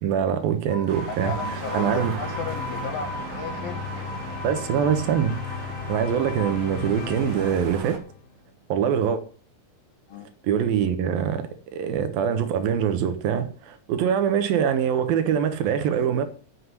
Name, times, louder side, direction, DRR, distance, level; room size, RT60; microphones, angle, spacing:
voice 1, 0.0-1.3 1.7-2.1 4.4-8.0 8.7-9.2 10.4-16.3, right 8 dB, 85° right, 3.0 m, -24 dB
sound 1, 0.7-6.5, left 2 dB, 15° left, 1.1 m, -38 dB
sound 2, 0.9-8.0, right 6 dB, 60° right, 3.0 m, -37 dB
voice 2, 1.1-4.1 10.1-10.3, left 6 dB, 80° left, 3.3 m, -35 dB
sound 3, 1.4-8.4, left 7 dB, 65° left, 1.8 m, -36 dB
8.2 x 7.5 x 8.1 m
omnidirectional pair, 4.1 m